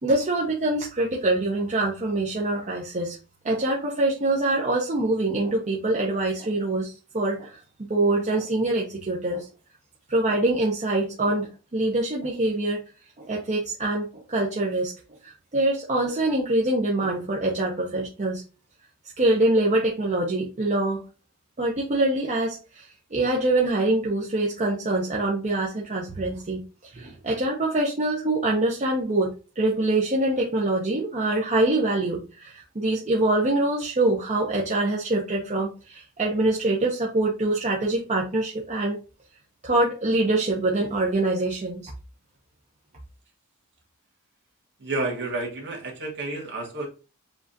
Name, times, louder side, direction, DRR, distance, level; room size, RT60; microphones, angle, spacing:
voice 1, 0.0-3.2 3.4-9.5 10.1-12.8 13.2-14.9 15.2-18.4 19.2-21.0 21.6-22.8 23.1-26.6 26.9-29.3 29.6-39.0 39.6-41.9, right 2 dB, 30° right, -2 dB, 0.7 m, -24 dB
voice 2, 44.8-46.9, right 2 dB, 55° right, -2 dB, 1.6 m, -30 dB
7.2 x 2.4 x 2.7 m, 0.32 s
head